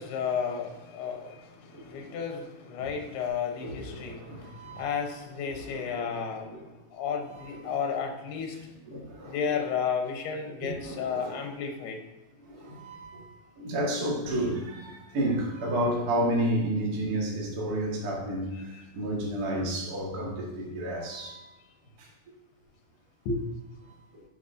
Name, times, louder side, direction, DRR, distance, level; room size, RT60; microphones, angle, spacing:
voice 1, 0.0-1.4 1.8-4.5 4.8-6.5 6.9-8.6 9.3-12.0 23.3-23.4, left 6 dB, 85° left, 3 dB, 2.9 m, -32 dB
voice 2, 1.7-2.2 2.8-2.9 3.6-5.0 5.4-6.6 7.2-7.8 8.5-9.6 10.6-11.4 12.4-21.5 22.0-22.1 24.1-24.2, right 1 dB, 80° right, -3 dB, 0.8 m, -32 dB
9.2 x 5.6 x 2.6 m, 1.0 s
omnidirectional pair, 4.5 m